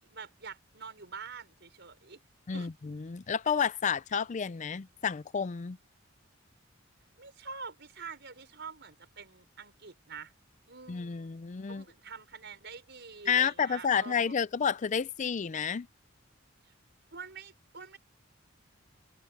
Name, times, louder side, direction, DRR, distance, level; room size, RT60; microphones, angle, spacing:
voice 1, 0.0-2.2 2.5-2.7 7.2-10.3 10.7-11.4 11.6-14.3 16.6-16.7 17.1-18.0, right 5 dB, 60° right, 5.8 m, -46 dB
voice 2, 2.5-5.8 10.9-11.8 13.3-15.9, left 7 dB, 35° left, 0.4 m, -30 dB
head